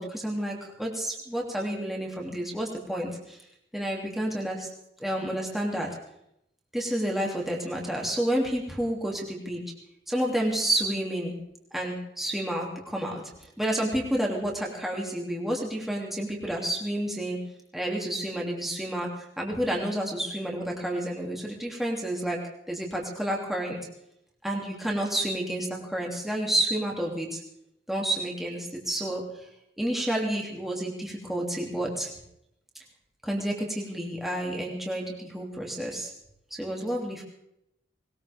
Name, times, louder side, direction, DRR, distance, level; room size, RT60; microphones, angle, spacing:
voice 1, 0.0-3.4 3.7-4.7 5.0-5.9 6.7-9.6 10.1-11.3 11.7-13.2 13.6-17.4 17.7-22.4 22.7-23.8 24.4-27.4 27.9-29.2 29.8-32.1 33.2-36.1 36.5-37.2, right 1 dB, ahead, -2 dB, 2.7 m, -30 dB
20.5 x 19.5 x 3.5 m, 0.80 s
head